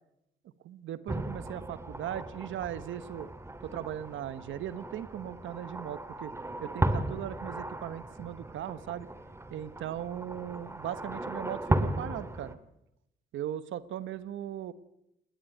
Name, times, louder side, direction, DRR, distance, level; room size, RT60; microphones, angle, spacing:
voice 1, 0.6-3.3 3.6-6.3 6.6-9.1 9.5-12.6 13.3-14.7, right 11 dB, 75° right, 15 dB, 1.2 m, -38 dB
sound 1, 1.1-12.5, right 1 dB, 15° right, 1.9 m, -36 dB
19.5 x 19.5 x 9.1 m, 0.84 s
cardioid pair, 90°, 20 cm